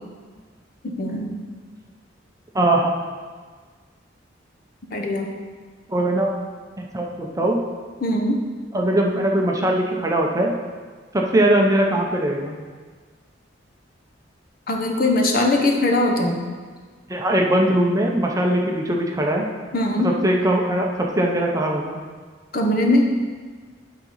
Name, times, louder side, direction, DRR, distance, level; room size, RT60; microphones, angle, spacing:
voice 1, 0.8-1.4 4.9-5.3 8.0-8.4 14.7-16.4 19.7-20.1 22.5-23.0, left 1 dB, 50° left, 2 dB, 0.9 m, -20 dB
voice 2, 2.5-2.9 5.9-6.3 6.8-7.6 8.7-10.5 11.1-12.6 17.1-19.5 20.0-22.0, right 1 dB, 20° right, 0 dB, 0.7 m, -20 dB
8.7 x 3.9 x 5.6 m, 1.5 s
head